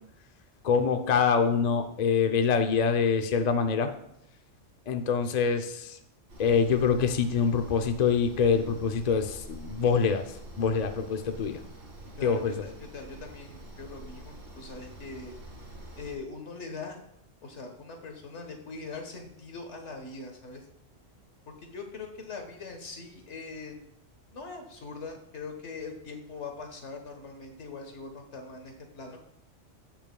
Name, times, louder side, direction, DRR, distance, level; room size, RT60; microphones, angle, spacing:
voice 1, 0.6-3.9 4.9-6.0 6.4-10.2 10.6-11.6 12.2-12.6, left 6 dB, 45° left, 6 dB, 0.6 m, -25 dB
sound 1, 6.3-16.2, right 1 dB, 90° right, 2.1 m, -46 dB
voice 2, 12.1-15.4 15.9-17.0 17.4-20.6 21.5-23.8 24.3-29.2, left 4 dB, 70° left, 4 dB, 1.6 m, -42 dB
15.5 x 5.8 x 2.3 m, 0.78 s
omnidirectional pair, 1.3 m